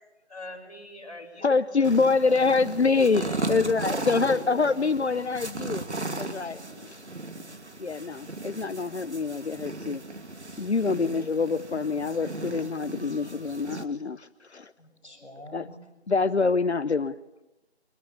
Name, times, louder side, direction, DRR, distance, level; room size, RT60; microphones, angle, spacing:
voice 1, 0.3-1.7 2.1-2.3 3.0-3.9 6.3-7.0, left 1 dB, 35° left, -2 dB, 4.4 m, -45 dB
voice 2, 1.4-3.2 3.5-5.8 6.2-6.6 7.8-10.0 10.6-14.7 15.5-15.7 16.1-17.2, left 4 dB, 75° left, 13 dB, 0.9 m, -25 dB
sound 1, 1.8-13.8, right 2 dB, 85° right, 2.5 m, -36 dB
voice 3, 5.5-6.2 6.6-6.9 14.8-15.8, equal, ahead, -20 dB, 2.3 m, -47 dB
23.0 x 21.5 x 8.6 m, 0.94 s
figure-of-eight pair, 180°, 33 cm